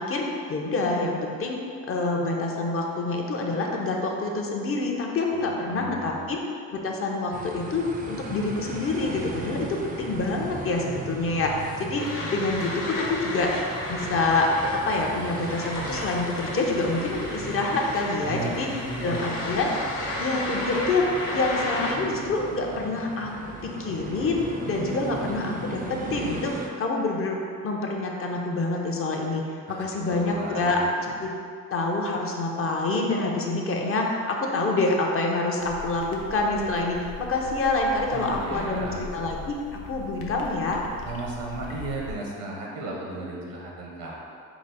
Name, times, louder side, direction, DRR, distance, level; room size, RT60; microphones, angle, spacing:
voice 1, 0.0-1.6 1.9-6.4 6.7-18.7 19.0-19.7 20.2-21.1 21.3-24.4 24.6-31.3 31.7-40.8, left 3 dB, 40° left, 0 dB, 0.6 m, -27 dB
voice 2, 5.3-6.3 18.2-19.5 29.7-30.8 38.1-39.0 41.0-44.2, right 2 dB, 85° right, -3 dB, 1.0 m, -35 dB
sound 1, 7.3-26.7, right 3 dB, 30° right, 0.4 m, -38 dB
sound 2, 12.0-21.9, left 1 dB, 65° left, 0.9 m, -33 dB
sound 3, 35.6-42.1, left 3 dB, 90° left, 0.6 m, -41 dB
4.9 x 2.0 x 4.0 m, 2.4 s
cardioid pair, 100°, 33 cm